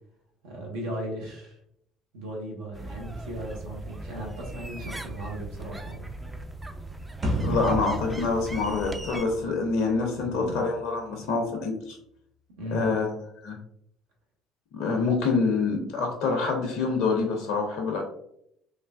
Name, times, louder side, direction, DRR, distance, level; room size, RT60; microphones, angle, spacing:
voice 1, 0.4-1.6 2.1-6.1 10.2-10.6 12.6-13.1, right 1 dB, 70° right, -1 dB, 0.6 m, -37 dB
sound 1, 2.7-9.2, right 2 dB, 15° right, 0.3 m, -39 dB
sound 2, 7.2-9.7, equal, 35° right, 1.0 m, -31 dB
voice 2, 7.4-12.0 12.7-13.1 13.4-13.6 14.7-18.0, left 4 dB, 60° left, 2 dB, 0.4 m, -26 dB
3.2 x 2.1 x 2.2 m, 0.73 s
figure-of-eight pair, 55°, 0 cm